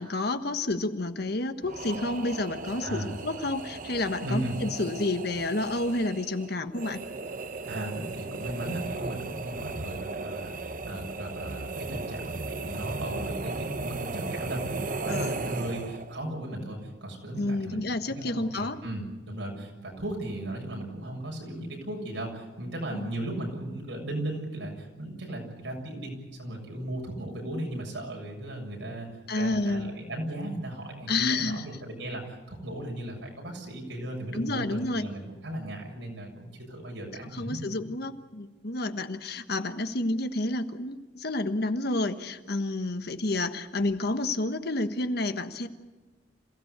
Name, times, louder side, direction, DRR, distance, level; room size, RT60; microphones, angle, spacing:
voice 1, 0.0-7.0 15.1-15.4 17.4-18.8 22.9-23.1 29.3-29.9 31.1-31.6 34.3-35.1 37.3-45.7, left 2 dB, 60° left, 8 dB, 1.3 m, -30 dB
sound 1, 1.6-16.2, right 3 dB, 45° right, 1.0 m, -36 dB
voice 2, 2.8-3.1 4.2-4.6 7.7-17.8 18.0-29.1 29.3-37.6, right 1 dB, 90° right, 0 dB, 7.2 m, -36 dB
27.0 x 16.5 x 8.2 m, 1.2 s
head